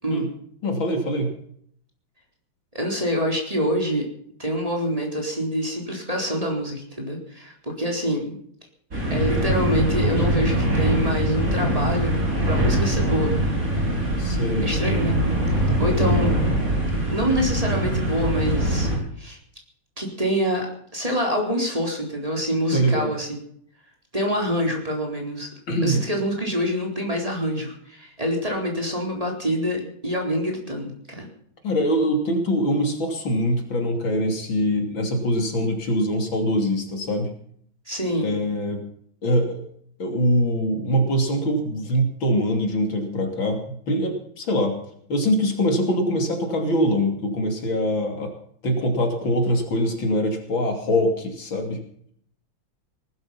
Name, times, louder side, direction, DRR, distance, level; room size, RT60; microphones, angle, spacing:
voice 1, 0.6-1.3 14.2-14.7 16.0-16.1 22.7-23.1 25.7-26.0 31.6-37.3 38.2-38.9 39.2-39.6 40.0-44.8 45.1-48.3 48.6-51.8, equal, 75° left, 4 dB, 3.7 m, -23 dB
voice 2, 2.7-4.1 4.4-8.4 9.1-12.2 12.5-13.4 14.6-15.2 15.5-16.3 17.1-18.9 19.2-19.4 20.0-20.7 20.9-23.4 24.1-25.5 25.8-31.3 37.9-38.3, equal, 15° right, 1 dB, 4.2 m, -26 dB
sound 1, 8.9-19.0, right 1 dB, 40° right, 5.5 m, -23 dB
19.5 x 12.5 x 5.8 m, 0.63 s
omnidirectional pair, 2.2 m